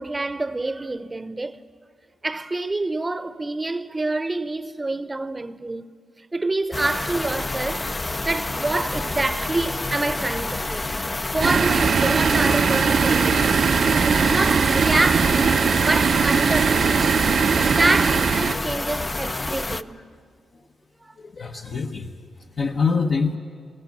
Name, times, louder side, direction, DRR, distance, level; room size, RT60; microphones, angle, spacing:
voice 1, 0.0-1.6 2.2-5.9 6.3-10.9 11.2-13.8 14.3-17.2 17.7-20.1 21.0-21.1, right 2 dB, 25° right, 0.8 m, -27 dB
sound 1, 6.7-19.8, left 2 dB, 25° left, 0.6 m, -28 dB
sound 2, 11.4-18.6, right 6 dB, 60° right, 0.6 m, -20 dB
Bell, 13.6-17.2, equal, 80° left, 2.6 m, -44 dB
voice 2, 21.2-22.1 22.4-23.4, left 5 dB, 55° left, 1.1 m, -25 dB
22.5 x 16.0 x 7.2 m
cardioid pair, 60°, 0 cm